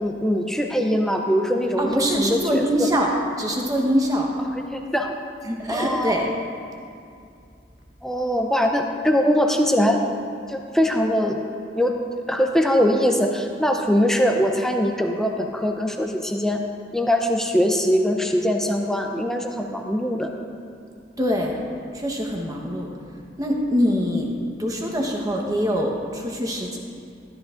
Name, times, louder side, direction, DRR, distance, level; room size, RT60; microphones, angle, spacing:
voice 1, 0.0-2.9 4.5-5.1 5.7-6.2 8.0-10.0 10.5-11.4 11.8-11.9 12.3-16.6 16.9-20.3, equal, 5° left, 3 dB, 0.5 m, -22 dB
voice 2, 1.8-3.1 3.4-4.3 5.4-6.3 21.2-21.6 21.9-22.9 23.4-24.3 24.6-26.8, equal, 20° right, 0 dB, 1.1 m, -23 dB
13.0 x 12.5 x 2.6 m, 2.5 s
head